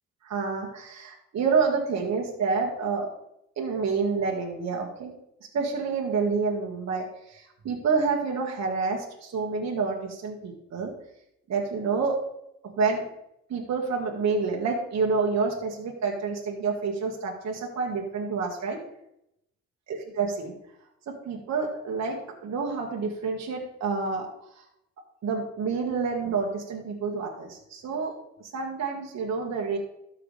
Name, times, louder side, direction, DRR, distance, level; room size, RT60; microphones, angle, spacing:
voice 1, 0.2-3.1 3.6-5.1 5.5-10.9 11.5-12.2 12.8-13.0 13.5-18.8 19.9-20.5 21.1-22.2 22.4-24.3 25.2-28.1 28.4-29.8, right 4 dB, 60° right, 0 dB, 1.7 m, -28 dB
13.0 x 5.8 x 3.3 m, 0.79 s
cardioid pair, 90°, 30 cm